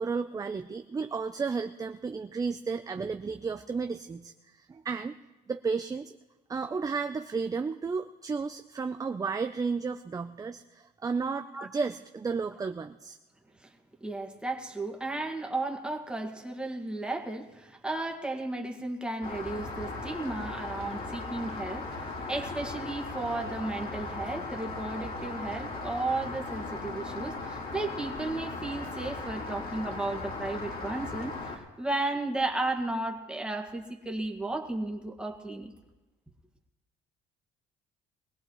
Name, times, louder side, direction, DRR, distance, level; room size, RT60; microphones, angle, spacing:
voice 1, 0.0-5.2 5.5-6.1 6.5-13.2, right 5 dB, 20° right, 8 dB, 0.5 m, -33 dB
voice 2, 14.0-35.7, right 2 dB, 5° right, 2 dB, 1.9 m, -34 dB
Rain, 19.2-31.6, left 3 dB, 55° left, 3.9 m, -38 dB
23.0 x 17.0 x 3.1 m, 1.1 s
cardioid pair, 110°, 17 cm